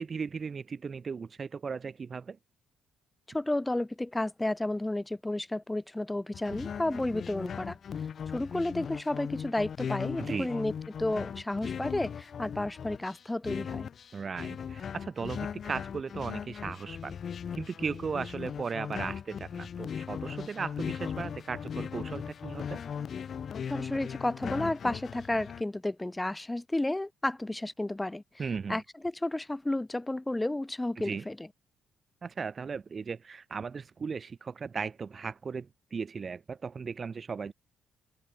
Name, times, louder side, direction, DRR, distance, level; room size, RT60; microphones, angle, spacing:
voice 1, 0.0-2.4 10.2-10.6 14.1-17.2 17.5-22.8 28.4-28.8 31.0-31.2 32.2-37.5, right 5 dB, 40° right, 0.6 m, -37 dB
voice 2, 3.3-7.8 8.3-10.7 11.0-13.9 23.7-28.4 28.7-31.5, left 1 dB, 10° left, 1.2 m, -32 dB
sound 1, 6.3-25.6, left 7 dB, 55° left, 0.5 m, -38 dB
cardioid pair, 90°, 0 cm